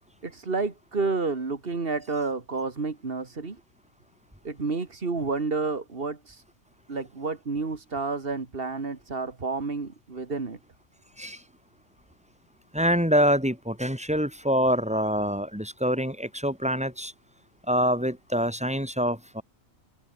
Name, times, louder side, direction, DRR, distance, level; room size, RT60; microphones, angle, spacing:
voice 1, 0.2-3.6 4.4-6.4 6.9-10.6, right 4 dB, 40° right, 2.3 m, -30 dB
voice 2, 12.7-17.1 17.7-19.4, equal, 5° right, 4.2 m, -25 dB
omnidirectional pair, 1.4 m